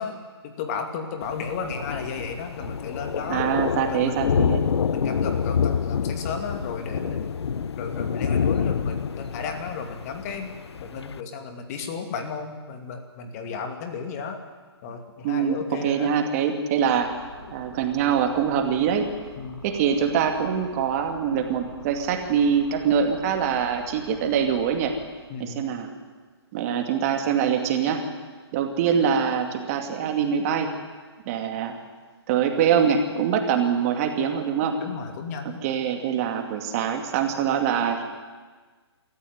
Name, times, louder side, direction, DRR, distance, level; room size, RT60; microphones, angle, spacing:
voice 1, 0.0-3.4 3.9-4.3 4.9-7.3 7.8-10.5 10.8-14.4 14.8-16.1 19.4-19.6 25.3-25.6 34.8-35.6, left 5 dB, 35° left, 5 dB, 2.4 m, -34 dB
Thunder, 1.2-11.2, left 7 dB, 70° left, 0.8 m, -27 dB
voice 2, 3.3-4.6 15.2-17.1 17.5-19.1 19.6-24.9 25.4-25.9 26.5-28.0 28.5-30.7 31.3-31.7 32.3-34.8 35.4-38.0, right 7 dB, 35° right, 4 dB, 2.4 m, -24 dB
sound 1, 16.8-25.0, left 2 dB, 90° left, 6.9 m, -46 dB
24.5 x 14.0 x 9.5 m, 1.4 s
hypercardioid pair, 145°, 14 cm